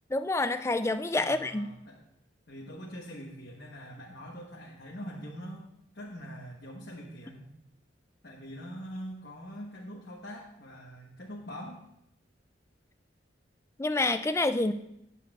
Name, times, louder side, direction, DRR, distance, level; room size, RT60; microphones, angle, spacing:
voice 1, 0.1-1.7 13.8-14.7, left 2 dB, 15° left, 10 dB, 0.3 m, -27 dB
voice 2, 1.1-2.0 2.5-5.7 5.9-7.5 8.2-11.8, equal, 60° left, -2 dB, 1.2 m, -43 dB
18.0 x 7.0 x 2.4 m, 0.77 s
head